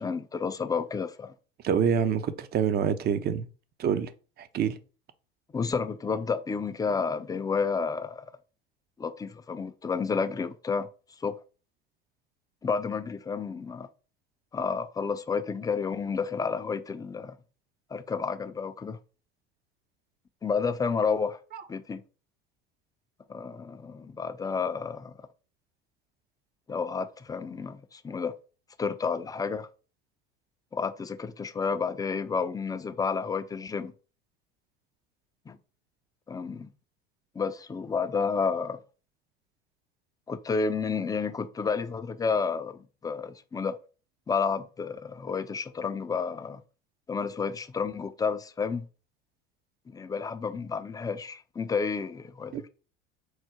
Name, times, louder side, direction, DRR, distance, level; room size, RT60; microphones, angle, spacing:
voice 1, 0.0-1.3 5.5-8.3 9.0-10.9 11.2-11.3 12.6-13.9 14.5-17.4 17.9-19.0 20.4-21.4 21.7-22.0 23.3-25.2 26.7-28.3 28.8-29.7 30.7-33.9 35.5-35.6 36.3-36.7 37.4-38.8 40.3-43.8 44.3-46.6 47.1-48.9 49.9-52.7, left 5 dB, 15° left, 0.4 m, -30 dB
voice 2, 1.6-3.5 3.8-4.1 4.4-4.8 21.5-21.6 52.5-52.6, right 7 dB, 35° right, 0.5 m, -26 dB
4.6 x 2.0 x 4.4 m
hypercardioid pair, 80°, 29 cm